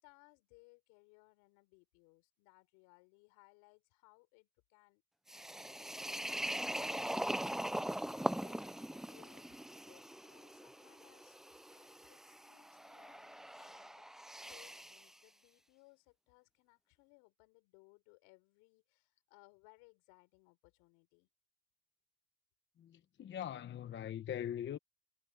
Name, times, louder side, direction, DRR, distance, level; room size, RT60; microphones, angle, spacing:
voice 1, 0.0-5.0 6.6-7.4 7.7-21.3, left 29 dB, 75° left, 5.0 m, -65 dB
sound 1, 5.3-15.1, right 1 dB, ahead, 0.3 m, -41 dB
voice 2, 22.8-24.8, left 10 dB, 35° left, 1.0 m, -41 dB
supercardioid pair, 105°, 32 cm